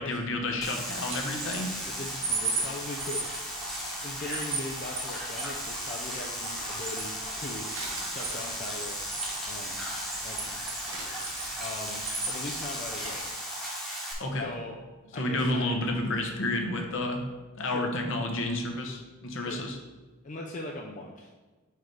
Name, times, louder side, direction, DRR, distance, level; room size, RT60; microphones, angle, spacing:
voice 1, 0.0-1.7 14.2-14.5 15.2-17.2 17.6-19.8, left 1 dB, 60° left, 3 dB, 0.9 m, -30 dB
sound 1, 0.6-14.1, equal, ahead, 1.1 m, -36 dB
sound 2, 0.9-13.3, right 3 dB, 25° right, 0.8 m, -38 dB
voice 2, 1.9-3.3 4.0-9.8 10.2-10.7 11.6-13.3 14.3-14.8 15.1-15.8 17.6-17.9 19.4-19.7 20.2-21.3, left 2 dB, 35° left, 0 dB, 0.4 m, -40 dB
sound 3, 7.7-9.9 10.9-11.8 12.1-12.3 12.8-12.9 13.1-13.4 13.7-13.8, right 3 dB, 60° right, 1.1 m, -43 dB
4.8 x 4.5 x 4.7 m, 1.3 s
head